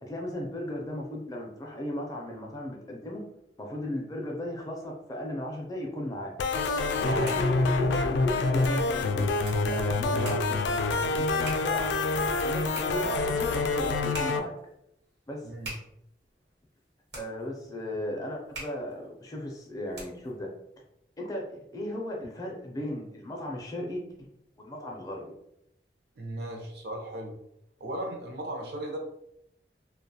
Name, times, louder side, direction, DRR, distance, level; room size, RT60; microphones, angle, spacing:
voice 1, 0.0-3.2 3.6-6.3 7.0-9.3 9.7-12.0 12.3-14.5 15.3-15.5 17.2-20.5 21.2-24.0 24.6-25.3, left 1 dB, 20° left, -1 dB, 0.4 m, -36 dB
sound 1, 6.4-14.4, left 3 dB, 90° left, 0.3 m, -27 dB
sound 2, 7.0-20.4, right 1 dB, 80° right, 1.1 m, -47 dB
voice 2, 26.2-27.3 27.8-29.0, right 1 dB, 65° right, 1 dB, 0.5 m, -36 dB
2.4 x 2.2 x 2.7 m, 0.79 s
head